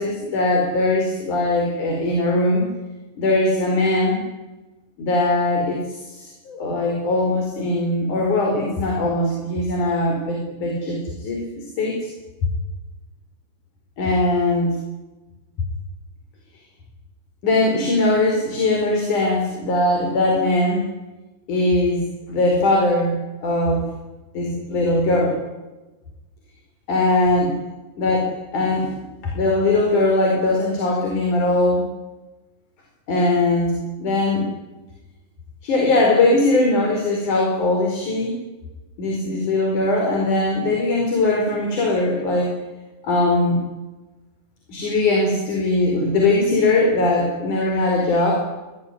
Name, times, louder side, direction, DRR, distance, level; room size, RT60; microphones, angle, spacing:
voice 1, 0.0-2.7 3.2-4.2 5.0-12.0 14.0-14.8 17.4-20.8 21.5-22.0 22.3-23.2 23.4-23.9 24.3-25.4 26.9-27.5 28.0-28.3 28.5-31.9 33.1-34.5 35.6-38.4 39.0-42.6 43.0-43.6 44.7-48.4, left 2 dB, 80° left, 0 dB, 6.3 m, -20 dB
26.5 x 19.0 x 9.9 m, 1.1 s
omnidirectional pair, 3.5 m